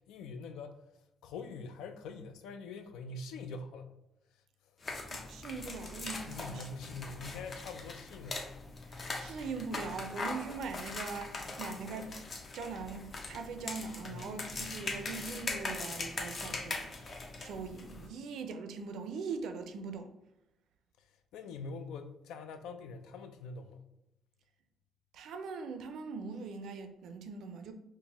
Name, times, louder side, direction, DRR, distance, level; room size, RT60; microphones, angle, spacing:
voice 1, 0.1-0.8 1.2-3.9 6.3-8.5 14.1-14.3 21.0-23.8, left 4 dB, 85° left, 0.3 m, -44 dB
sound 1, 4.8-18.1, left 3 dB, 45° left, 0.6 m, -41 dB
voice 2, 5.1-6.7 7.2-7.3 8.9-12.2 12.5-20.1 25.1-27.7, right 4 dB, 75° right, 0.4 m, -41 dB
4.2 x 2.1 x 3.3 m
cardioid pair, 75°, 0 cm